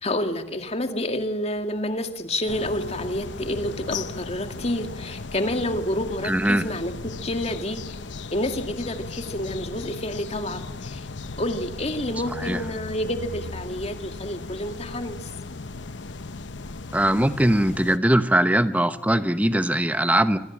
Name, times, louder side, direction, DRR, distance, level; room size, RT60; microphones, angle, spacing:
voice 1, 0.0-7.8 8.3-11.1 11.4-15.3, left 1 dB, 35° left, 6 dB, 2.2 m, -29 dB
sound 1, 2.5-18.0, left 3 dB, 80° left, 0.9 m, -36 dB
voice 2, 6.2-6.6 12.4-12.6 16.9-20.4, right 1 dB, 10° right, 11 dB, 1.0 m, -21 dB
25.5 x 25.5 x 7.3 m, 0.86 s
head